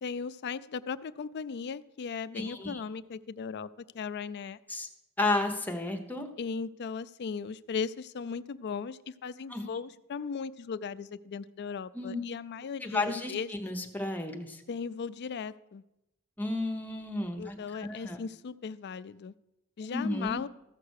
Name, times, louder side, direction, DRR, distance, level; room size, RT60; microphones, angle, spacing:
voice 1, 0.0-3.7 3.9-4.6 6.4-13.5 14.7-15.8 17.4-19.3 19.8-20.5, left 5 dB, 50° left, 14 dB, 0.4 m, -37 dB
voice 2, 2.3-2.8 4.7-4.9 5.2-6.3 9.5-9.6 11.9-12.2 12.8-14.6 16.4-17.5 17.8-18.2 19.9-20.4, left 2 dB, 10° left, 4 dB, 1.0 m, -32 dB
14.0 x 5.8 x 6.4 m, 0.90 s
head